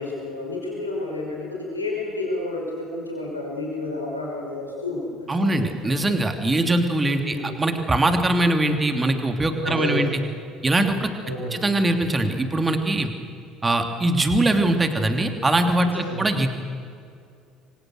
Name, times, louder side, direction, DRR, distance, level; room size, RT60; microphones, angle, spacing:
voice 1, 0.0-5.7 7.2-7.5 9.6-10.2 11.2-11.7 15.8-16.4, left 2 dB, 85° left, -2 dB, 5.6 m, -30 dB
voice 2, 5.3-10.1 10.6-11.1 11.5-13.1 13.6-16.6, right 2 dB, 20° right, 6 dB, 3.0 m, -22 dB
28.0 x 25.0 x 6.5 m, 2.3 s
figure-of-eight pair, 60°, 0 cm